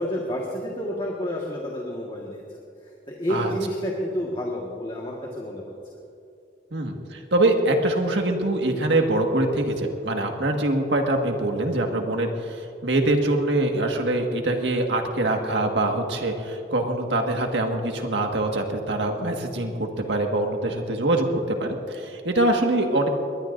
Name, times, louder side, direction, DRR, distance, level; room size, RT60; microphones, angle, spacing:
voice 1, 0.0-5.7, equal, 25° left, -3 dB, 1.6 m, -30 dB
voice 2, 6.7-23.1, right 2 dB, 85° right, 3 dB, 1.8 m, -24 dB
22.5 x 19.5 x 2.6 m, 2.6 s
head